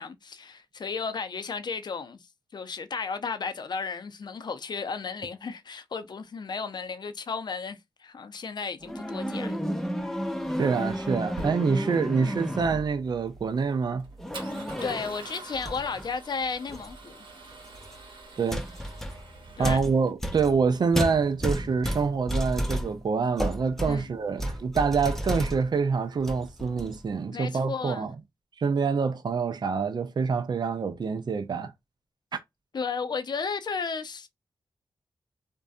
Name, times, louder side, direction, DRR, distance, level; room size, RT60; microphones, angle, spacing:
voice 1, 0.0-9.6 14.8-17.3 19.6-19.8 23.8-24.1 27.3-28.1 32.7-34.3, left 5 dB, 55° left, 0.5 m, -34 dB
sound 1, 8.8-13.0 14.2-15.2 15.5-16.1 16.7-17.0 17.8-17.9 18.5-25.8 26.2-27.0, equal, 5° left, 0.6 m, -32 dB
Male speech man speaking / Car / Engine starting, 9.0-20.1, right 3 dB, 75° right, 1.1 m, -47 dB
voice 2, 10.6-14.0 18.4-18.7 19.6-28.1 28.6-31.7, right 5 dB, 55° right, 0.5 m, -26 dB
2.6 x 2.2 x 2.4 m
cardioid pair, 45°, 9 cm